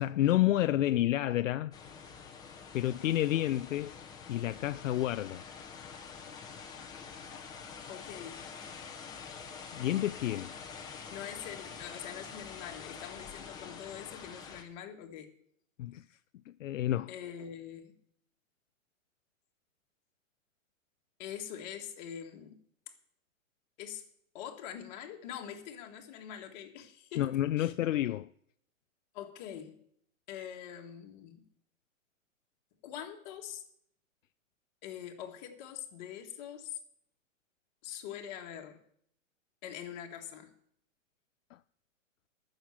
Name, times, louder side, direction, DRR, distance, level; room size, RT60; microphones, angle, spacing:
voice 1, 0.0-1.7 2.7-4.0 4.3-5.4 9.8-10.5 15.8-16.0 16.5-17.1 27.2-28.3, left 13 dB, 70° left, 0.6 m, -29 dB
sound 1, 1.7-14.6, left 6 dB, 10° left, 1.1 m, -46 dB
voice 2, 7.9-8.4 11.1-15.3 17.1-18.0 21.2-22.6 23.8-24.0 24.3-27.7 29.1-29.8 30.3-31.4 32.8-33.6 34.8-36.8 37.8-38.8 39.6-40.5, left 9 dB, 35° left, 1.8 m, -44 dB
13.0 x 6.5 x 8.6 m
hypercardioid pair, 160°, 40 cm